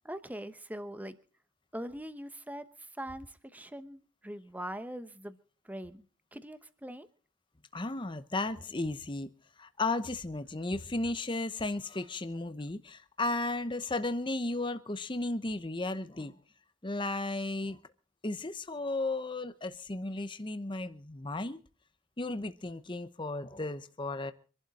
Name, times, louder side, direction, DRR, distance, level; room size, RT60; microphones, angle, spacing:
voice 1, 0.0-1.2 1.7-5.4 5.6-6.0 6.3-7.1, right 1 dB, 10° right, 1.0 m, -42 dB
voice 2, 7.7-9.3 9.6-16.4 16.8-17.8 18.2-21.6 22.2-24.3, left 2 dB, 25° left, 0.8 m, -34 dB
25.5 x 11.5 x 4.2 m
head